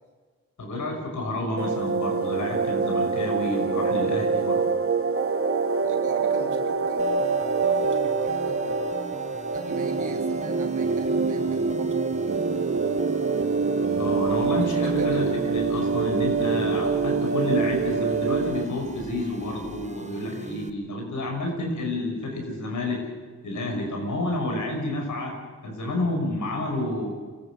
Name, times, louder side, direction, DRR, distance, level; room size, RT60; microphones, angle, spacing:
voice 1, 0.6-4.8 13.9-23.0 23.4-25.4 25.6-27.1, left 1 dB, 85° left, 2 dB, 5.7 m, -29 dB
sound 1, 1.6-18.6, right 4 dB, 50° right, 1.6 m, -25 dB
voice 2, 5.8-7.1 7.6-8.9 9.5-12.4 14.4-15.3, right 5 dB, 85° right, 3 dB, 2.9 m, -40 dB
sound 2, 7.0-20.7, right 2 dB, 25° right, 1.8 m, -41 dB
24.5 x 15.0 x 7.6 m, 1.4 s
cardioid pair, 50°, 30 cm